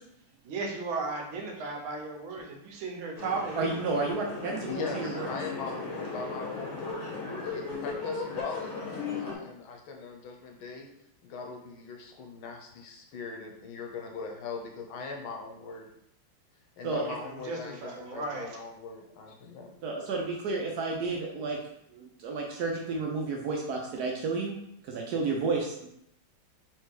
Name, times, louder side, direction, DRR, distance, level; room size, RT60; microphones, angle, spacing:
voice 1, 0.4-3.8 17.2-18.6, right 3 dB, 85° right, 1 dB, 1.6 m, -35 dB
sound 1, 3.2-9.3, left 4 dB, 45° left, 1.1 m, -36 dB
voice 2, 3.6-5.3 16.8-17.0 19.8-21.6 21.9-24.6 24.8-25.9, right 3 dB, 70° right, 0 dB, 1.0 m, -31 dB
voice 3, 4.7-8.6 9.1-10.9 11.2-15.9 16.8-19.7, left 4 dB, 90° left, 2 dB, 1.6 m, -40 dB
4.2 x 3.3 x 3.2 m, 0.77 s
omnidirectional pair, 2.2 m